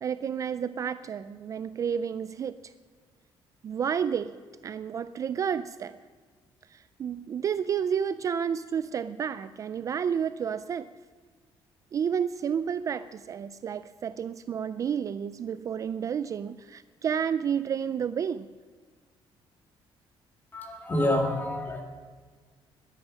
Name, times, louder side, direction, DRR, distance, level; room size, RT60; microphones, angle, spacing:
voice 1, 0.0-2.7 3.6-5.9 6.7-10.9 11.9-18.5, right 7 dB, 35° right, 14 dB, 0.3 m, -31 dB
voice 2, 20.5-21.8, left 1 dB, 20° left, 2 dB, 2.2 m, -27 dB
21.0 x 9.6 x 6.3 m, 1.5 s
cardioid pair, 155°, 10 cm